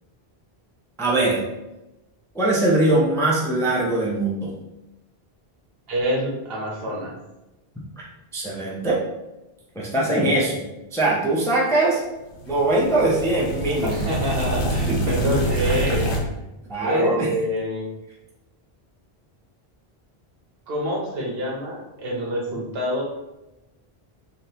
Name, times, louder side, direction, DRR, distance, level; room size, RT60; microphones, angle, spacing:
voice 1, 1.0-1.4 2.3-4.5 8.0-8.1 8.3-9.0 9.7-10.5 10.9-12.0 12.5-14.0 14.9-15.0 16.7-17.3, right 2 dB, 5° left, -5 dB, 0.4 m, -21 dB
voice 2, 5.9-7.1 10.1-10.3 13.8-16.1 16.8-17.9 20.7-23.0, equal, 70° right, -2 dB, 1.0 m, -26 dB
sound 1, 12.3-16.2, right 1 dB, 60° left, 0.8 m, -26 dB
3.4 x 2.7 x 2.8 m, 1.0 s
omnidirectional pair, 1.0 m